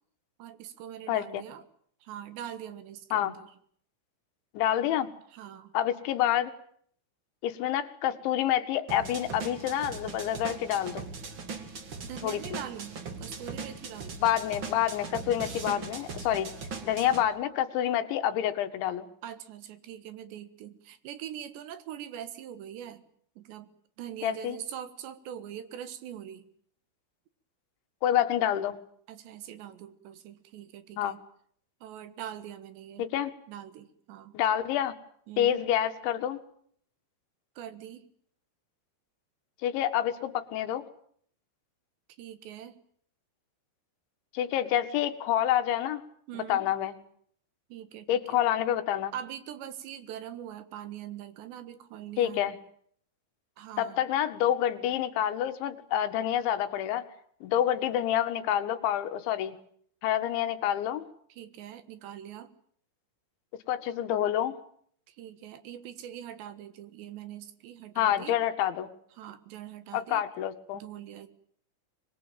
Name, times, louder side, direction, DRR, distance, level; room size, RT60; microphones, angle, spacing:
voice 1, 0.4-1.6 2.0-3.5 5.3-5.8 12.0-14.2 19.2-23.0 23.4-23.7 24.0-26.5 29.1-31.2 31.8-33.1 33.5-34.4 35.3-35.6 37.6-38.1 42.2-42.8 46.3-46.7 47.7-48.4 49.1-52.6 53.6-54.0 61.3-62.5 65.1-68.4 69.1-70.2 70.7-71.3, right 10 dB, 75° right, 13 dB, 3.7 m, -43 dB
voice 2, 1.1-1.4 3.1-3.3 4.6-5.1 5.7-6.5 7.4-11.1 12.2-12.6 14.2-16.5 16.8-19.1 24.2-24.6 28.0-28.8 31.0-31.1 33.0-33.3 34.3-35.0 35.4-36.4 39.6-40.9 44.3-46.0 46.5-46.9 48.1-49.1 52.2-52.6 53.8-57.1 57.4-59.6 60.0-61.0 63.7-64.6 68.0-68.9 69.9-70.8, left 11 dB, 85° left, 9 dB, 3.8 m, -28 dB
sound 1, 8.9-17.2, right 4 dB, 40° right, 2.0 m, -40 dB
25.0 x 21.0 x 9.0 m, 0.64 s
omnidirectional pair, 5.2 m